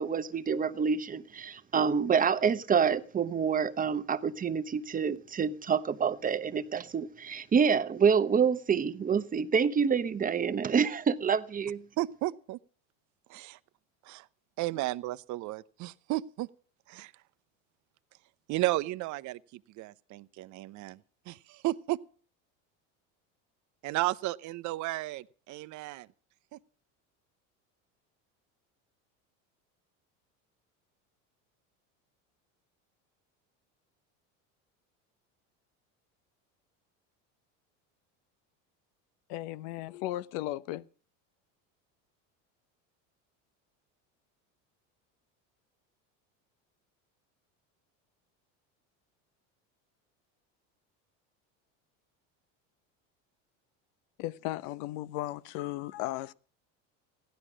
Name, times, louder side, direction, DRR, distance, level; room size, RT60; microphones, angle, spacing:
voice 1, 0.0-11.8, right 6 dB, 20° right, 0.9 m, -27 dB
voice 2, 12.0-12.6 13.3-13.6 14.0-14.3 14.6-16.5 16.9-17.1 18.5-21.0 21.3-22.0 23.8-26.1 26.5-26.6, right 17 dB, 50° right, 0.7 m, -33 dB
voice 3, 39.3-40.9 54.2-56.3, left 15 dB, 70° left, 0.8 m, -36 dB
15.5 x 11.5 x 6.2 m
supercardioid pair, 115°, 38 cm